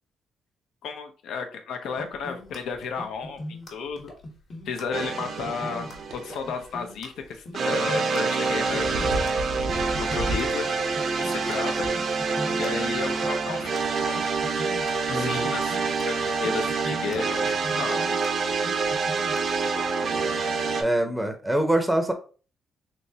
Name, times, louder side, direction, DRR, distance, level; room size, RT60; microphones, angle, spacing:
voice 1, 0.8-3.4 3.7-4.1 4.6-5.9 6.1-9.4 10.0-10.7 11.2-11.9 12.6-14.2 15.1-18.1, left 5 dB, 80° left, 0.6 m, -33 dB
sound 1, 2.0-19.9, left 1 dB, 45° left, 1.1 m, -41 dB
sound 2, 4.9-6.6 7.5-20.8, right 4 dB, 55° right, 0.6 m, -27 dB
sound 3, 5.9-6.2 8.1-10.5 11.0-11.1 11.8-11.9, right 1 dB, 85° right, 0.8 m, -33 dB
voice 2, 15.1-15.5 17.6-17.9 20.8-22.1, right 1 dB, 5° right, 0.6 m, -25 dB
3.4 x 3.0 x 2.7 m
cardioid pair, 90°, 0 cm